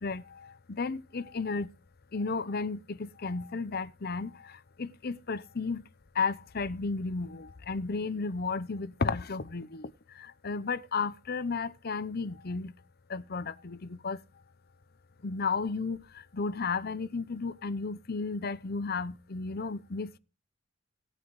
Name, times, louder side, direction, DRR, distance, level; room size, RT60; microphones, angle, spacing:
voice 1, 0.0-1.7 2.1-5.8 6.1-12.7 13.1-14.2 15.2-20.2, left 4 dB, 50° left, 0.7 m, -33 dB
18.5 x 9.1 x 3.1 m
head